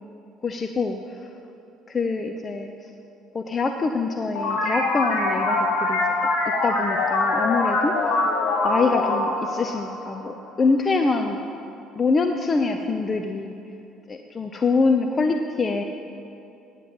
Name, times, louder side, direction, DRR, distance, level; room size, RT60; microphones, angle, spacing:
voice 1, 0.4-1.3 1.9-2.9 3.3-6.0 6.6-8.0 8.6-11.4 12.0-13.6 14.1-15.8, left 4 dB, 35° left, 5 dB, 0.7 m, -24 dB
sound 1, 4.3-10.6, left 2 dB, 75° left, 2.9 m, -24 dB
9.9 x 7.8 x 7.2 m, 2.6 s
hypercardioid pair, 65°, 0 cm